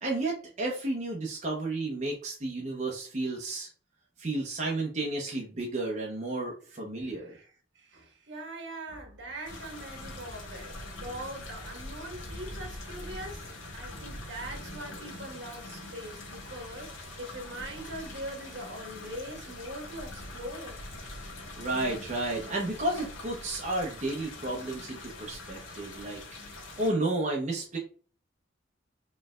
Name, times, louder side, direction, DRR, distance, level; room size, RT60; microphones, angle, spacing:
voice 1, 0.0-3.7 4.2-7.3 21.6-26.2 26.8-27.8, right 2 dB, 35° right, 0.7 m, -32 dB
voice 2, 6.7-20.8, right 1 dB, 65° right, 1.3 m, -42 dB
sound 1, 9.4-26.9, left 2 dB, 80° left, 1.3 m, -43 dB
4.2 x 3.2 x 2.3 m
head